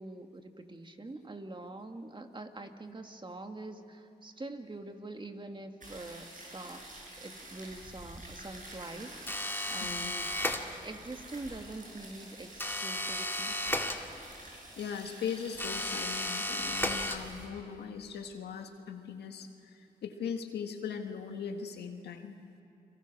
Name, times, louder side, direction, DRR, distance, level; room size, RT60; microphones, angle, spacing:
voice 1, 0.0-6.9 7.2-10.3 10.8-13.6, right 2 dB, 30° right, 5 dB, 2.1 m, -45 dB
sound 1, 5.8-17.5, right 1 dB, 50° right, 7.9 m, -49 dB
sound 2, 9.3-11.1 12.6-14.5 15.6-17.6, left 1 dB, 15° left, 2.1 m, -34 dB
voice 2, 9.8-10.2 14.8-22.4, left 7 dB, 85° left, 5 dB, 1.7 m, -39 dB
30.0 x 22.5 x 6.2 m, 2.7 s
cardioid pair, 55°, 17 cm